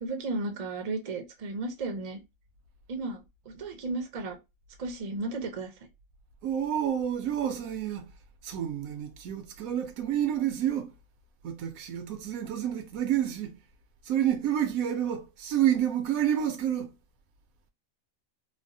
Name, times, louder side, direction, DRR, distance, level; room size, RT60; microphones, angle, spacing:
voice 1, 0.0-2.2 2.9-3.2 3.5-4.4 4.8-5.7, right 3 dB, 45° right, 0.5 m, -34 dB
voice 2, 6.4-8.1 8.4-10.9 11.4-13.5 14.1-16.9, right 10 dB, 80° right, 1.1 m, -29 dB
3.3 x 2.1 x 2.5 m
omnidirectional pair, 1.4 m